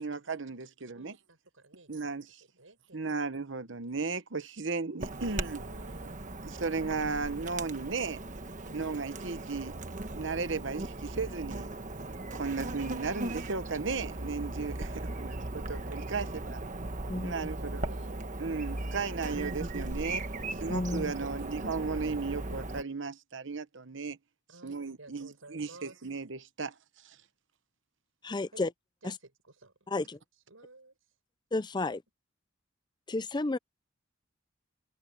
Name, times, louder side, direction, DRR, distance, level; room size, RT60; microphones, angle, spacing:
voice 1, 0.0-1.2 1.9-2.4 2.9-5.6 6.4-8.2 8.7-9.8 10.1-11.7 12.3-16.6 17.2-17.8 18.4-20.3 20.6-24.2 24.6-26.7 27.0-27.2, right 4 dB, 65° right, 1.1 m, -35 dB
voice 2, 0.9-2.1 2.5-3.2 5.0-6.2 7.7-7.8 8.6-8.8 17.3-19.0 20.3-20.7 21.1-21.4 24.5-26.0 28.5-28.6 29.0-29.9 30.3-31.2, right 2 dB, 85° right, 6.5 m, -54 dB
Chirp tweet / Buzz, 5.0-22.8, right 2 dB, 40° right, 1.3 m, -38 dB
voice 3, 17.1-17.5 20.7-21.1 28.2-28.7 29.0-29.1 29.9-30.2 31.5-32.0 33.1-33.6, left 2 dB, 20° left, 0.5 m, -32 dB
head